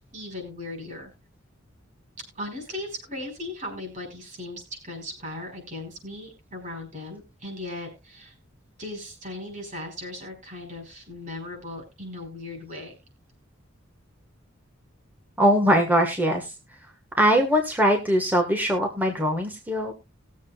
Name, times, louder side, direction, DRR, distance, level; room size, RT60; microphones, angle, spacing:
voice 1, 0.1-1.1 2.3-8.3 8.8-12.9, left 1 dB, 40° right, 2 dB, 5.2 m, -37 dB
voice 2, 15.4-16.5 17.2-19.9, equal, 10° right, 2 dB, 1.3 m, -21 dB
20.0 x 7.5 x 2.3 m, 0.27 s
head